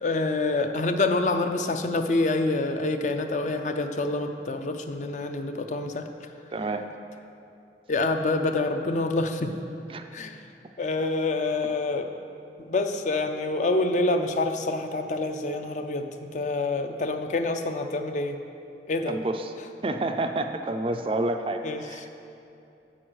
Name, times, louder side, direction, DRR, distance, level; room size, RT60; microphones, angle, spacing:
voice 1, 0.0-6.1 7.9-9.5 10.1-10.4 10.8-12.1 12.6-18.4 18.9-19.2 21.6-21.8, left 2 dB, 45° left, 6 dB, 0.5 m, -27 dB
voice 2, 6.5-6.9 9.9-10.0 19.1-19.5 19.8-22.0, right 2 dB, 30° right, 7 dB, 0.4 m, -29 dB
7.6 x 6.2 x 6.3 m, 2.8 s
head